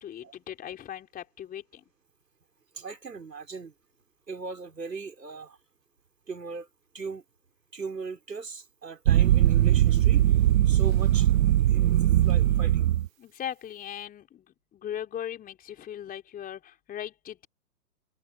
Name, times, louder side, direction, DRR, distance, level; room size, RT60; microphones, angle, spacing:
voice 1, 0.0-1.8 13.2-14.5 14.7-17.5, left 10 dB, 20° left, 3.6 m, -38 dB
voice 2, 2.7-3.7 4.3-5.6 6.3-6.7 6.9-7.2 7.7-10.3 10.7-11.9 12.3-12.9, right 4 dB, 85° right, 5.2 m, -39 dB
sound 1, 9.0-13.1, right 13 dB, 60° right, 0.5 m, -21 dB
figure-of-eight pair, 120°, 48 cm